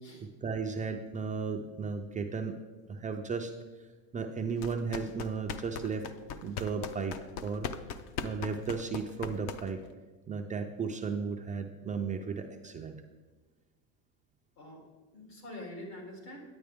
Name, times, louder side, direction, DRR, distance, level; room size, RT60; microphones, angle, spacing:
voice 1, 0.4-2.6 2.9-3.5 4.1-6.1 6.4-7.2 7.4-7.7 8.2-9.8 10.3-13.0, right 5 dB, 20° right, 3 dB, 0.3 m, -34 dB
sound 1, 4.6-9.9, left 7 dB, 60° left, 0.7 m, -40 dB
voice 2, 14.5-16.4, left 1 dB, 85° left, 0 dB, 3.3 m, -46 dB
9.7 x 9.0 x 3.5 m, 1.3 s
supercardioid pair, 125°, 43 cm